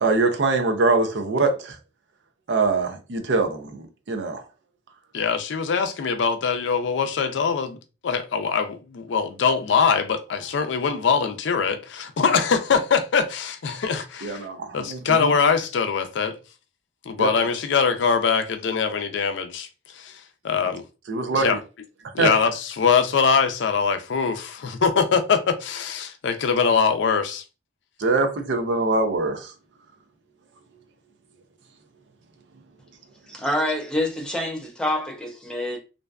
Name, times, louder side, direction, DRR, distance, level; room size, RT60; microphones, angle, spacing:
voice 1, 0.0-1.8 2.5-4.4 14.2-15.3 17.2-17.3 21.1-21.5 22.2-22.3 28.0-29.5, right 3 dB, 70° right, 0.5 m, -23 dB
voice 2, 5.1-7.8 8.0-14.5 14.7-16.4 17.1-19.7 20.0-20.2 20.4-20.8 21.3-21.6 22.1-27.4, left 6 dB, 75° left, 0.4 m, -22 dB
voice 3, 33.3-35.8, left 1 dB, 5° left, 0.5 m, -26 dB
2.5 x 2.2 x 2.3 m
head